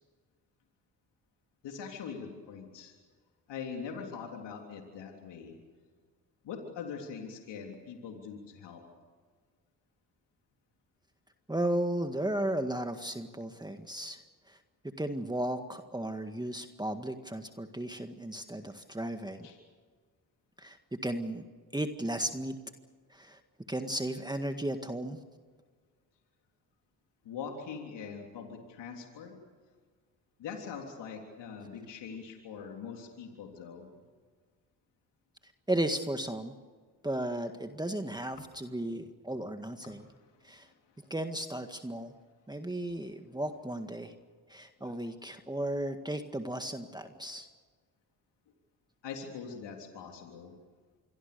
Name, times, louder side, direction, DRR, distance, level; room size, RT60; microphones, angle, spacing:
voice 1, 1.6-2.9 3.5-5.6 6.4-8.8 19.4-19.6 27.2-29.3 30.4-33.9 39.8-41.1 44.8-44.9 49.0-50.5, left 6 dB, 80° left, 2 dB, 3.5 m, -43 dB
voice 2, 11.5-14.2 14.5-14.6 15.0-19.5 20.6-20.8 21.0-21.4 21.7-22.5 23.1-23.4 23.7-25.2 35.7-36.5 37.0-40.0 40.4-40.7 41.1-42.1 42.5-44.1 44.5-47.5, right 1 dB, 10° right, 6 dB, 1.9 m, -35 dB
26.5 x 22.5 x 6.9 m, 1.5 s
supercardioid pair, 55°, 42 cm